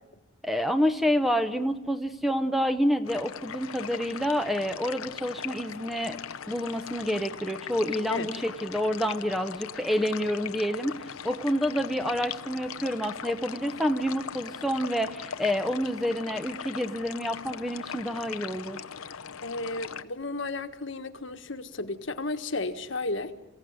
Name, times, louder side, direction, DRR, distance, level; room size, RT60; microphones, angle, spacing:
voice 1, 0.4-6.2 6.5-18.8, equal, ahead, 9 dB, 0.8 m, -28 dB
sound 1, 3.0-20.0, left 7 dB, 90° left, 0.9 m, -40 dB
voice 2, 19.4-23.3, left 2 dB, 60° left, 8 dB, 1.5 m, -33 dB
28.5 x 16.5 x 9.5 m, 1.0 s
head